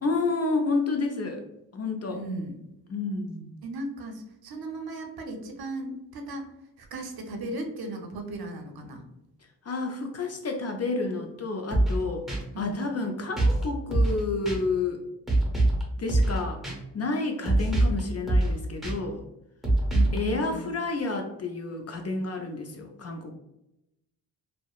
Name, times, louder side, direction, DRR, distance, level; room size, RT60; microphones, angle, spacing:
voice 1, 0.0-1.4 1.7-2.2 2.9-3.5 9.6-12.3 12.6-15.0 16.0-16.6 16.9-19.2 20.1-23.4, left 3 dB, 35° left, 3 dB, 0.4 m, -30 dB
voice 2, 2.1-2.5 3.6-6.5 6.8-9.0 12.5-12.8 19.9-20.7, right 2 dB, 55° right, 4 dB, 0.6 m, -36 dB
sound 1, 11.7-12.0 12.3-12.4 13.4-13.6 13.9-14.2 14.5-14.6 15.3-15.8 16.1-16.4 16.6-16.7 17.5-18.0 18.3-18.5 18.8-18.9 19.6-20.2, right 2 dB, ahead, 0.8 m, -23 dB
2.7 x 2.0 x 2.3 m, 0.88 s
cardioid pair, 65°, 43 cm